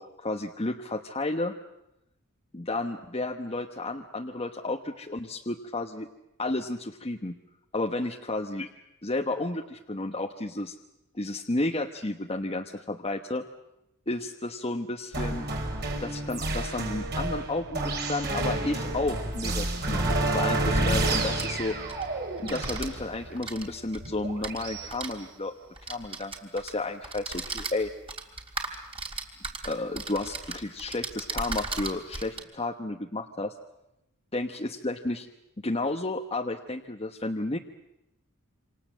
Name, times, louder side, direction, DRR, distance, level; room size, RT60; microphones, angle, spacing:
voice 1, 0.0-1.5 2.5-6.1 6.4-7.4 7.7-8.7 9.0-10.7 11.1-13.4 14.1-15.5 16.0-20.1 20.3-21.8 22.4-25.5 25.8-27.9 29.6-33.5 34.3-35.3 35.6-37.6, left 2 dB, 25° left, 2 dB, 1.2 m, -32 dB
sound 1, 15.1-24.9, right 2 dB, 50° right, 5.3 m, -29 dB
sound 2, 19.4-19.5 20.8-22.1 22.4-22.9 23.3-25.1 25.8-26.7 27.0-32.4, right 3 dB, 25° right, 3.4 m, -37 dB
28.5 x 26.5 x 7.6 m, 0.87 s
head